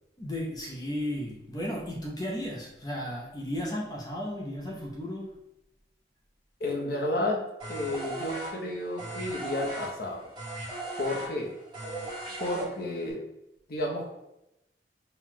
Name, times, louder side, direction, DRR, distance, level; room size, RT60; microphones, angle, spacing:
voice 1, 0.2-5.4, equal, 25° left, -2 dB, 0.6 m, -34 dB
voice 2, 6.6-10.3 11.0-11.6 12.4-13.3 13.7-14.1, left 1 dB, 55° left, -1 dB, 0.8 m, -32 dB
sound 1, 7.6-13.1, right 2 dB, 25° right, 1.4 m, -37 dB
4.5 x 2.3 x 3.7 m, 0.88 s
head